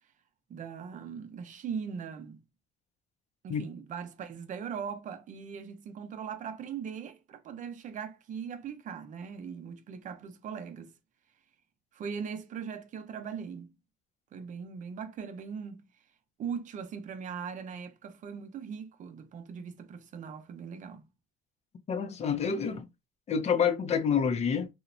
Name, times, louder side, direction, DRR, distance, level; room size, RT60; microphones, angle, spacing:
voice 1, 0.5-2.4 3.4-10.9 11.9-13.7 14.3-15.9 16.4-21.0, right 6 dB, 50° right, 0.6 m, -40 dB
voice 2, 21.9-22.9 23.3-24.7, left 7 dB, 40° left, 0.5 m, -28 dB
2.9 x 2.1 x 2.4 m
cardioid pair, 110°, 17 cm